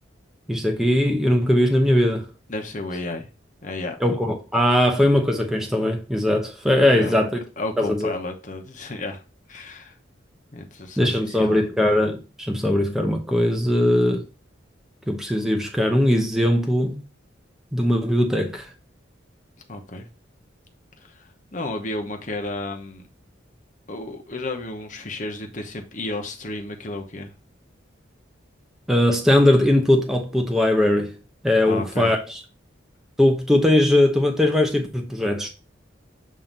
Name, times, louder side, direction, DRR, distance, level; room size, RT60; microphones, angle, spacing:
voice 1, 0.5-2.3 4.0-7.4 7.8-8.1 11.0-14.3 15.1-17.0 17.7-18.7 28.9-31.2 31.4-32.4 33.2-35.5, left 1 dB, ahead, 0.8 m, -20 dB
voice 2, 2.5-3.3 3.6-4.0 6.9-7.1 7.6-9.2 9.5-9.9 10.5-11.5 19.7-20.1 21.0-23.0 23.9-27.3 31.7-32.1, left 2 dB, 40° left, 0.9 m, -32 dB
7.4 x 2.8 x 5.2 m
head